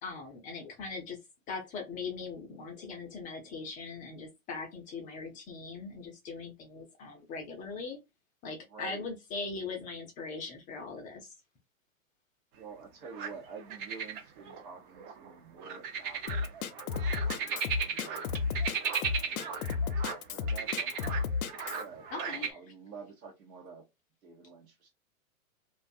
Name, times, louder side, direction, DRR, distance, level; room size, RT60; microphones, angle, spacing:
voice 1, 0.0-1.2 1.5-8.0 8.4-11.3 22.1-22.6, left 4 dB, 20° left, 0.4 m, -40 dB
voice 2, 8.7-9.1 12.5-16.5 17.0-18.7 19.1-21.2 21.8-23.8 24.2-24.9, right 5 dB, 85° right, 0.9 m, -49 dB
sound 1, 13.0-13.3 13.7-20.2 20.5-22.5, right 7 dB, 35° right, 0.6 m, -36 dB
Drum kit, 16.3-21.8, left 5 dB, 85° left, 0.5 m, -32 dB
2.4 x 2.2 x 2.6 m
hypercardioid pair, 115°, 42 cm